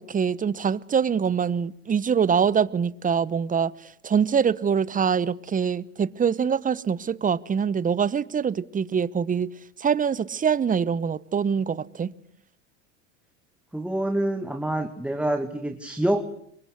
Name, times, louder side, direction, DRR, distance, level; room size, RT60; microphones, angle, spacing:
voice 1, 0.0-3.7 4.0-9.5 9.8-12.1, right 7 dB, 20° right, 1.0 m, -24 dB
voice 2, 13.7-16.2, right 1 dB, 5° right, 2.1 m, -26 dB
27.5 x 23.5 x 8.1 m
hypercardioid pair, 85°, 36 cm